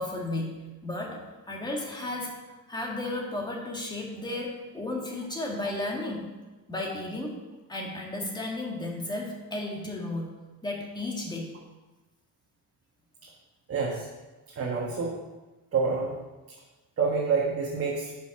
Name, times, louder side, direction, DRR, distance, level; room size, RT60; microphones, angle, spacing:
voice 1, 0.0-2.4 2.7-6.3 6.7-7.4 7.7-10.3 10.6-11.5, left 2 dB, 10° left, -1 dB, 1.7 m, -34 dB
voice 2, 13.7-14.1 14.5-15.2 15.7-16.2 16.5-16.6 17.0-18.1, right 4 dB, 35° right, -3 dB, 1.4 m, -28 dB
6.9 x 5.3 x 5.9 m, 1.1 s
cardioid pair, 130°, 38 cm